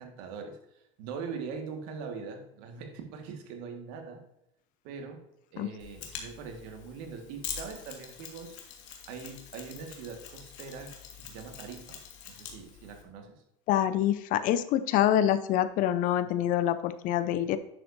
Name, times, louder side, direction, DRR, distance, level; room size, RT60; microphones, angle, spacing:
voice 1, 0.0-4.2 4.8-5.2 5.5-8.6 9.1-13.4, right 5 dB, 70° right, 4 dB, 1.8 m, -42 dB
Mechanisms, 5.8-13.0, left 8 dB, 75° left, 1.9 m, -44 dB
voice 2, 13.7-17.6, left 11 dB, 55° left, 13 dB, 0.7 m, -26 dB
9.8 x 6.9 x 2.7 m, 0.83 s
supercardioid pair, 95°, 16 cm